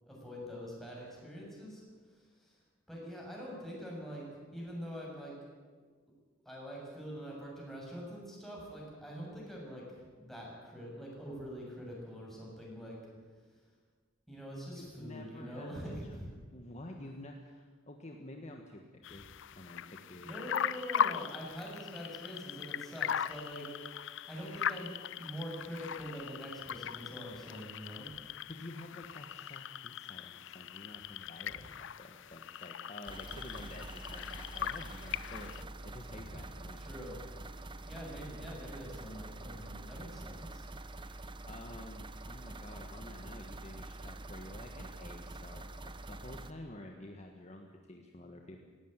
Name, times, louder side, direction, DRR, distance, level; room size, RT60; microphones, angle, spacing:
voice 1, 0.0-1.8 2.1-2.6 2.9-5.3 6.5-13.0 14.3-16.3 20.2-23.7 24.0-28.2 31.5-31.7 36.2-36.4 36.8-37.2 37.8-40.6, equal, ahead, -4 dB, 7.2 m, -44 dB
voice 2, 14.8-15.7 16.1-16.3 16.5-19.3 19.5-20.5 28.5-35.6 35.8-36.9 41.0-48.7, left 1 dB, 35° left, 2 dB, 1.6 m, -50 dB
sound 1, 19.0-35.6, left 8 dB, 65° left, 0.5 m, -39 dB
sound 2, 33.1-46.5, right 2 dB, 25° right, 0.9 m, -46 dB
18.0 x 17.5 x 9.1 m, 1.5 s
head